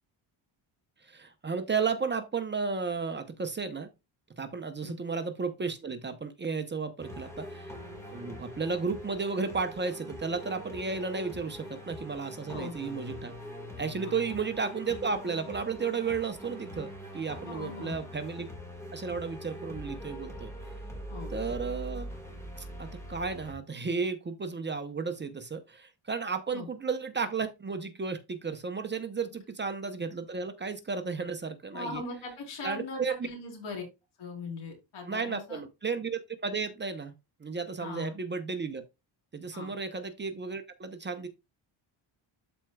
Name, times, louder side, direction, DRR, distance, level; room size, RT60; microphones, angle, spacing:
voice 1, 1.0-3.9 4.4-7.7 8.1-13.3 13.8-16.9 17.1-18.5 18.9-20.5 21.3-22.1 22.6-32.0 32.6-33.3 35.1-37.1 37.4-38.8 39.3-41.3, right 5 dB, 25° right, 0.7 m, -33 dB
sound 1, 7.0-23.5, equal, 5° left, 1.9 m, -43 dB
voice 2, 17.4-18.0 21.1-21.3 26.5-26.7 29.3-29.4 31.7-33.8 34.2-35.6 37.8-38.1 39.5-39.7, left 3 dB, 85° left, 3.9 m, -40 dB
12.5 x 4.4 x 2.3 m
cardioid pair, 165°, 48 cm